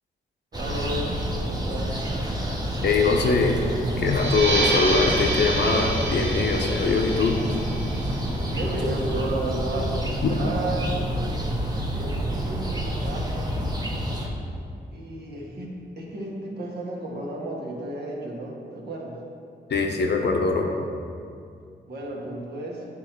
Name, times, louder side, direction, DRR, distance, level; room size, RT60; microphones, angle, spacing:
sound 1, 0.5-14.3, equal, 20° right, 1.0 m, -28 dB
voice 1, 0.5-1.1 1.6-2.0 8.5-11.1 11.9-13.6 14.9-19.2 21.9-22.9, right 1 dB, 60° right, -3 dB, 1.5 m, -33 dB
voice 2, 2.8-3.6 4.0-7.4 10.2-10.3 19.7-20.7, left 4 dB, 65° left, 2 dB, 0.9 m, -22 dB
sound 2, 4.0-9.2, right 2 dB, 80° right, 1.7 m, -29 dB
8.7 x 3.8 x 4.4 m, 2.3 s
cardioid pair, 80°, 19 cm